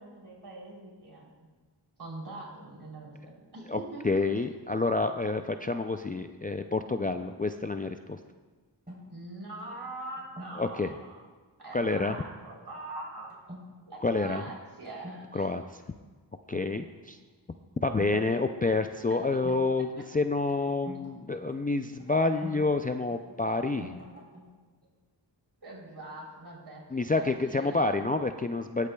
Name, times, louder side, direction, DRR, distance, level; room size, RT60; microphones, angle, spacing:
voice 1, 0.0-1.3 2.0-4.2 9.1-11.2 11.6-13.3 13.9-15.5 19.1-20.0 25.6-26.8 27.1-27.9, right 2 dB, 60° right, -3 dB, 3.4 m, -43 dB
voice 2, 3.7-8.2 10.6-10.9 11.7-12.1 14.0-14.4 15.3-15.6 16.5-17.2 17.8-23.9 26.9-28.9, left 3 dB, 20° left, 7 dB, 0.3 m, -28 dB
sound 1, 8.9-10.7 11.9-12.2 12.6-12.9 13.3-13.7 14.0-14.4 14.8-15.2 16.4-17.2 18.0-19.7 20.0-22.6 23.1-24.6, equal, 20° right, 3.4 m, -47 dB
19.0 x 8.2 x 2.3 m, 1.4 s
wide cardioid pair, 60°, 44 cm